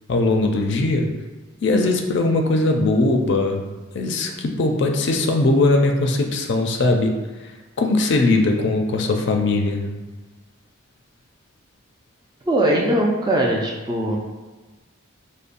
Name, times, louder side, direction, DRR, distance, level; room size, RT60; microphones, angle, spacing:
voice 1, 0.1-1.1 1.6-3.6 3.9-7.2 7.4-7.5 7.8-9.9, left 2 dB, 55° left, 3 dB, 0.4 m, -20 dB
voice 2, 12.4-14.2, right 1 dB, 20° right, -1 dB, 0.3 m, -20 dB
5.2 x 2.1 x 2.5 m, 1.3 s
head